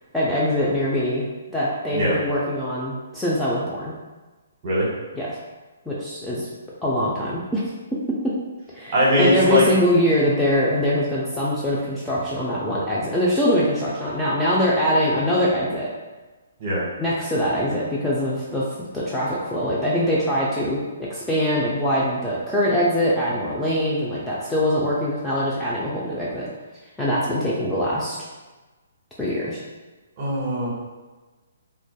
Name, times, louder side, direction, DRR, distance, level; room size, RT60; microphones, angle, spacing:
voice 1, 0.1-3.9 5.2-5.4 5.9-6.5 6.8-7.6 8.7-15.9 17.0-20.8 21.1-26.5 27.0-28.2 29.2-29.6, left 1 dB, 5° left, -8 dB, 0.3 m, -23 dB
voice 2, 8.9-9.6 16.6-16.8 30.2-30.7, equal, 40° right, -5 dB, 0.8 m, -20 dB
2.5 x 2.2 x 2.2 m, 1.2 s
hypercardioid pair, 145°, 0 cm